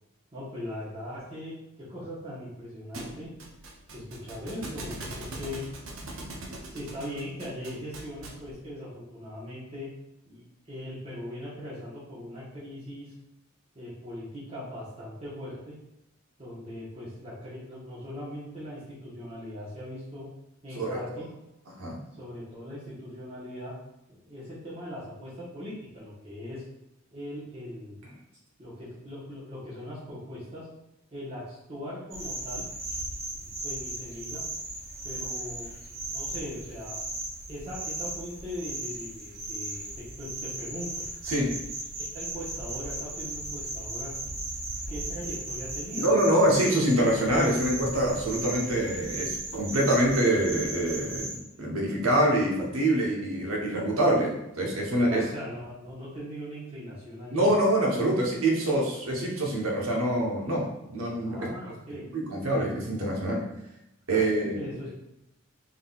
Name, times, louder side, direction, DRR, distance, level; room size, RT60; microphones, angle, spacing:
voice 1, 0.3-3.3 3.9-5.6 6.7-9.9 10.2-13.1 13.7-15.8 16.4-20.3 20.6-21.3 22.2-23.7 24.1-26.6 27.1-28.0 28.6-30.7 31.1-32.6 33.4-34.4 35.0-35.7 36.0-37.2 37.5-41.0 42.1-44.2 44.9-46.1 51.5-51.8 55.1-57.5 61.2-62.1 64.1-64.9, left 1 dB, 30° right, -11 dB, 1.1 m, -40 dB
Thump thud, 2.9-8.5, right 1 dB, 75° right, 0.7 m, -41 dB
voice 2, 20.8-21.2 21.8-22.0 41.3-41.5 46.0-55.2 57.3-61.5 62.1-63.5 64.1-64.6, right 1 dB, 90° right, -2 dB, 1.0 m, -25 dB
sound 1, 32.1-51.4, right 2 dB, 45° right, 0.9 m, -36 dB
3.8 x 3.6 x 2.4 m, 0.89 s
head